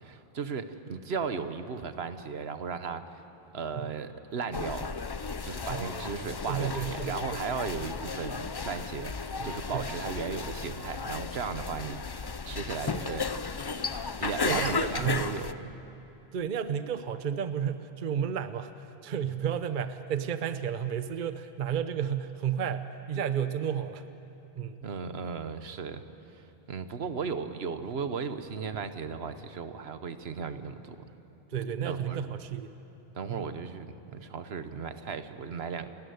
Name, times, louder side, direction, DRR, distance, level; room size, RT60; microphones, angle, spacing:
voice 1, 0.0-3.2 3.5-4.9 5.4-13.2 14.2-15.7 24.8-26.0 26.4-31.0 31.8-32.3 33.1-35.9, right 5 dB, 75° right, 10 dB, 1.2 m, -36 dB
sound 1, 4.5-15.5, left 4 dB, 35° left, 0.4 m, -34 dB
voice 2, 5.7-6.1 6.5-7.4 9.4-9.9 14.4-15.3 16.3-18.7 19.0-24.0 24.6-24.8 31.5-32.7 33.3-33.5, right 8 dB, 55° right, 11 dB, 0.8 m, -32 dB
29.5 x 13.0 x 9.4 m, 2.9 s
omnidirectional pair, 1.1 m